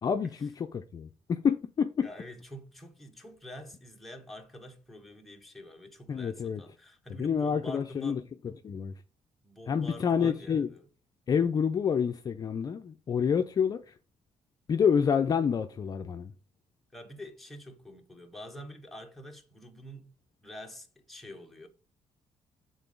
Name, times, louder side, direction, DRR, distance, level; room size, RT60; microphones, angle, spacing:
voice 1, 0.0-2.1 6.1-6.6 7.2-8.9 9.7-10.7 11.3-13.9 14.7-16.3, left 7 dB, 35° left, 0.5 m, -28 dB
voice 2, 2.0-8.3 9.4-10.9 16.9-20.1 20.4-21.7, left 1 dB, ahead, 1.2 m, -46 dB
8.1 x 3.8 x 5.2 m
cardioid pair, 145°, 11 cm